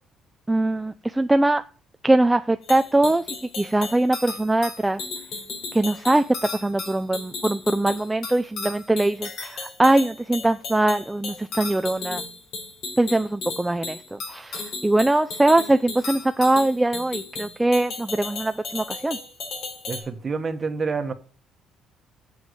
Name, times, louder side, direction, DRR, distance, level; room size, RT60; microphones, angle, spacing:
voice 1, 0.5-1.6 2.0-3.2 3.6-5.0 5.7-12.2 13.0-19.2, right 2 dB, 10° right, 9 dB, 0.5 m, -22 dB
sound 1, 2.6-20.0, left 4 dB, 60° left, 4.2 m, -35 dB
voice 2, 19.9-21.1, right 4 dB, 30° right, 9 dB, 1.3 m, -28 dB
8.1 x 7.4 x 8.0 m, 0.41 s
cardioid pair, 125°, 0 cm